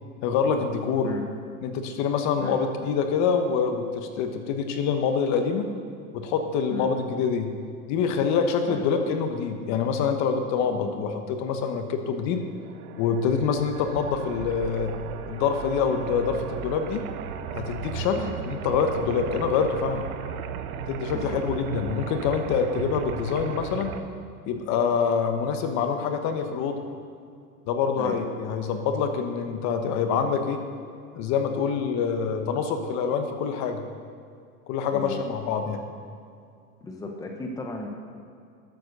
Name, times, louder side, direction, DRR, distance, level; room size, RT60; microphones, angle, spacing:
voice 1, 0.2-1.1 1.6-5.6 6.1-7.5 7.9-12.4 13.0-14.9 15.3-17.0 17.5-20.0 20.9-23.9 24.5-26.8 27.7-30.6 31.1-33.8 34.7-35.8, left 6 dB, 35° left, 6 dB, 1.1 m, -26 dB
sound 1, 12.4-24.0, right 8 dB, 70° right, 1.0 m, -36 dB
voice 2, 36.8-37.9, left 2 dB, 10° left, 2 dB, 0.9 m, -35 dB
12.0 x 7.5 x 6.7 m, 2.3 s
hypercardioid pair, 130°, 45 cm